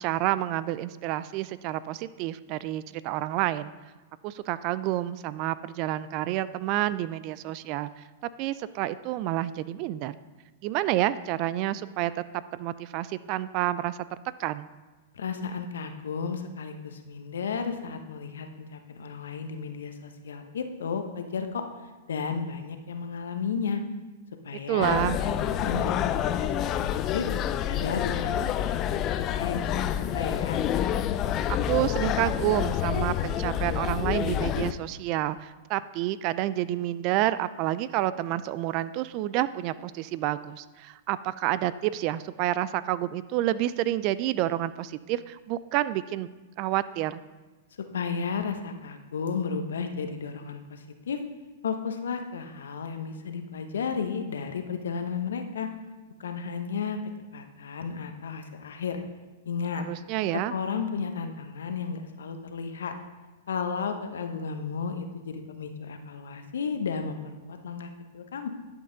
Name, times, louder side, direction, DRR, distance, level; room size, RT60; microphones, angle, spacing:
voice 1, 0.0-3.7 4.2-7.9 8.4-10.2 10.6-12.2 12.5-14.0 14.4-14.7 24.7-25.2 31.5-46.3 46.6-47.2 59.7-60.5, right 14 dB, 45° right, 16 dB, 0.3 m, -29 dB
voice 2, 15.1-23.8 24.4-27.3 27.7-30.6 47.8-51.2 51.6-55.7 56.2-57.0 57.3-59.0 59.4-59.8 60.3-62.9 63.5-68.5, left 5 dB, 80° left, 7 dB, 0.9 m, -33 dB
sound 1, 24.8-34.7, left 10 dB, 35° left, 0.4 m, -28 dB
11.0 x 5.4 x 3.9 m, 1.2 s
hypercardioid pair, 115°, 0 cm